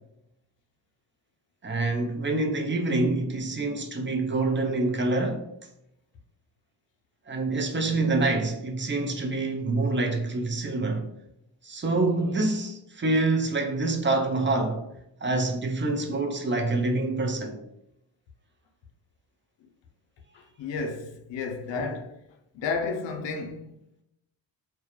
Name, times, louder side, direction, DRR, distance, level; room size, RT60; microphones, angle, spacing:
voice 1, 1.6-5.5 7.3-11.1 11.6-14.9 15.2-17.6 21.7-21.9, right 2 dB, 25° right, 0.5 m, -26 dB
voice 2, 20.3-22.2 22.5-23.8, left 4 dB, 70° left, 0.6 m, -32 dB
2.2 x 2.1 x 2.9 m
cardioid pair, 55°, 46 cm